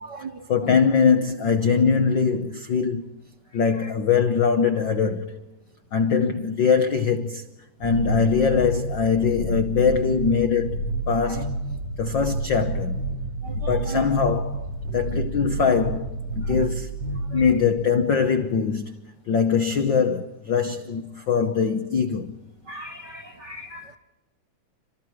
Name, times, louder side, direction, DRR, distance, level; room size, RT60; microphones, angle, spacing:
voice 1, 0.5-3.1 3.5-5.4 5.9-7.4 7.8-11.5 12.0-13.0 13.7-16.9 17.3-18.9 19.3-22.3, left 6 dB, 80° left, 1.0 m, -22 dB
sound 1, 7.8-17.5, right 2 dB, 35° right, 6.3 m, -29 dB
voice 2, 22.7-24.0, right 2 dB, 65° right, 1.0 m, -37 dB
29.5 x 26.0 x 4.8 m
omnidirectional pair, 3.7 m